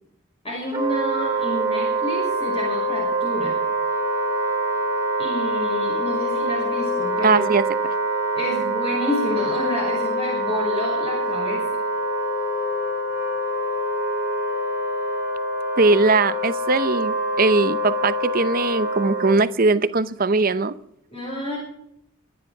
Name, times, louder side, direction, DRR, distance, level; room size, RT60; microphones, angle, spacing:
voice 1, 0.4-3.6 5.2-7.4 8.4-11.7 21.1-21.6, left 2 dB, 30° left, -4 dB, 5.9 m, -29 dB
Wind instrument woodwind instrument, 0.7-19.3, right 1 dB, 15° right, 3.0 m, -25 dB
voice 2, 7.2-7.6 15.8-20.7, right 3 dB, 45° right, 14 dB, 0.8 m, -20 dB
25.0 x 10.5 x 4.8 m, 0.75 s
head